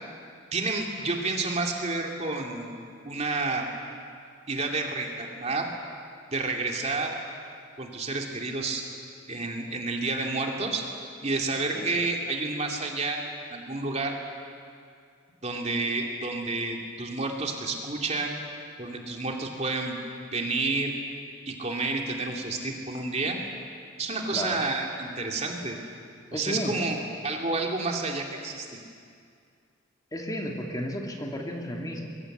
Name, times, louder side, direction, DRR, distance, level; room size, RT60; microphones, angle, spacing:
voice 1, 0.5-2.8 3.0-3.7 4.5-5.7 6.3-7.1 7.8-8.8 9.3-10.8 11.2-13.2 13.5-14.1 15.4-18.4 18.8-20.0 20.3-20.9 21.5-23.4 24.0-25.8 26.3-27.0 27.2-28.7, right 3 dB, 35° right, 1 dB, 2.8 m, -30 dB
voice 2, 24.3-24.6 26.3-26.9 30.1-32.1, equal, 20° left, 1 dB, 2.4 m, -33 dB
25.5 x 22.5 x 8.1 m, 2.3 s
head